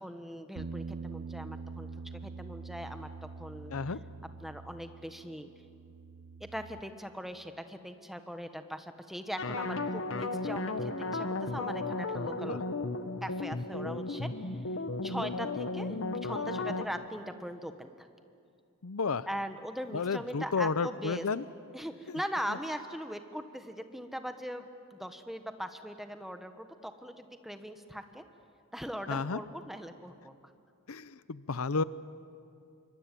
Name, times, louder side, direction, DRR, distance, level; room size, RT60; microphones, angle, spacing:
voice 1, 0.0-1.9 2.2-3.1 3.4-3.7 4.4-5.5 6.4-12.7 13.2-14.6 15.0-18.1 19.3-21.3 21.7-28.2 28.7-30.4, equal, ahead, 8 dB, 1.2 m, -40 dB
Bass guitar, 0.6-6.8, right 4 dB, 70° right, 0.6 m, -44 dB
sound 1, 9.4-16.8, left 2 dB, 65° left, 1.3 m, -34 dB
voice 2, 18.8-19.3 19.9-21.4 22.1-22.2 22.5-22.6 29.1-29.4 30.9-31.8, left 4 dB, 90° left, 16 dB, 0.7 m, -32 dB
26.5 x 24.0 x 9.3 m, 2.4 s
head